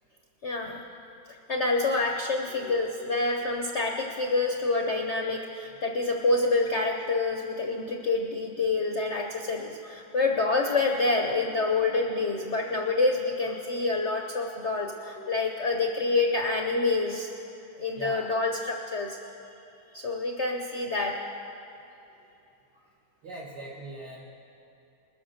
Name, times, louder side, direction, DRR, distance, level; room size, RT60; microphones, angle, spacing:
voice 1, 0.4-0.8 1.5-17.3 17.8-19.2 19.9-21.2, left 3 dB, 55° left, 1 dB, 0.8 m, -27 dB
voice 2, 17.9-18.3 19.2-20.5 23.2-24.2, right 2 dB, 65° right, -3 dB, 1.7 m, -43 dB
20.5 x 7.5 x 6.4 m, 2.8 s
omnidirectional pair, 2.0 m